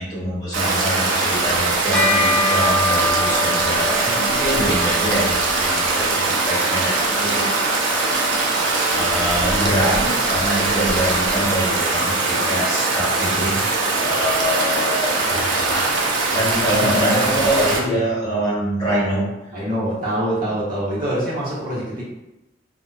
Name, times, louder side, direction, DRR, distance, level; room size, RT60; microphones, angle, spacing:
voice 1, 0.0-8.0 8.9-13.6 14.0-15.9 16.3-19.2, equal, 20° left, -9 dB, 1.1 m, -24 dB
Stream, 0.5-17.8, right 3 dB, 70° right, 0.4 m, -21 dB
Bell, 1.9-11.6, left 1 dB, 5° left, 0.5 m, -28 dB
voice 2, 16.8-17.5 19.5-22.0, right 1 dB, 50° right, -8 dB, 0.9 m, -25 dB
2.5 x 2.2 x 2.3 m, 0.93 s
head